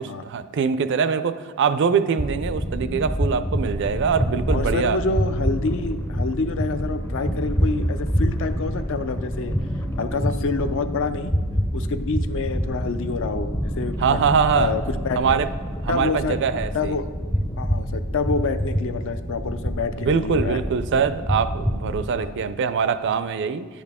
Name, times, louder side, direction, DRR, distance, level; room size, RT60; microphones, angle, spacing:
voice 1, 0.0-5.0 14.0-14.7 15.2-15.5 15.8-17.0 20.0-23.7, right 6 dB, 55° right, 13 dB, 0.4 m, -23 dB
sound 1, 2.2-22.1, equal, 10° left, 0.5 m, -27 dB
voice 2, 4.5-9.5 10.0-11.3 11.7-14.2 14.5-15.4 15.9-16.4 16.7-17.1 17.6-20.6 22.1-22.3, left 3 dB, 60° left, 10 dB, 0.5 m, -27 dB
10.0 x 8.8 x 3.5 m, 1.5 s
head